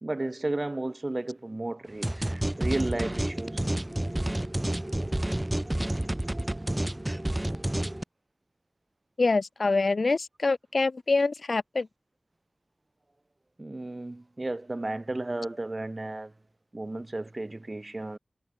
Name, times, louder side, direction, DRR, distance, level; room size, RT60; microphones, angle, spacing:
voice 1, 0.0-3.6 13.6-16.3 16.7-18.2, right 2 dB, 35° right, 0.9 m, -33 dB
sound 1, 2.0-8.0, right 1 dB, 20° right, 2.8 m, -29 dB
voice 2, 9.2-11.9, left 3 dB, 70° left, 1.5 m, -25 dB
wide cardioid pair, 65°, 0 cm